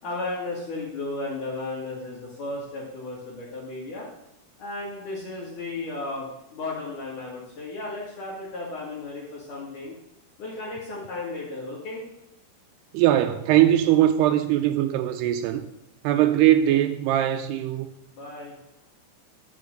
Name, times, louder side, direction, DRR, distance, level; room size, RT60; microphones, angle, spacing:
voice 1, 0.0-4.1 4.6-10.0 10.4-12.0 18.1-18.6, left 2 dB, 55° left, 3.3 m, -34 dB
voice 2, 12.9-15.7 16.0-17.9, right 12 dB, 85° right, 2.7 m, -21 dB
12.0 x 6.2 x 6.5 m
omnidirectional pair, 4.6 m